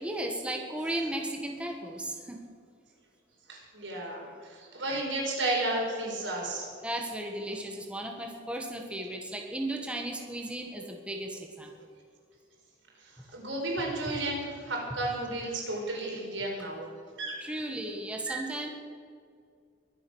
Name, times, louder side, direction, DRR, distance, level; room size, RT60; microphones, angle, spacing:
voice 1, 0.0-2.4 6.8-11.7 17.4-18.7, right 1 dB, 5° right, 2 dB, 1.5 m, -35 dB
voice 2, 3.5-6.7 13.3-16.9 17.2-17.4 18.3-18.5, right 2 dB, 90° right, -1 dB, 4.7 m, -33 dB
22.5 x 7.7 x 6.3 m, 2.2 s
head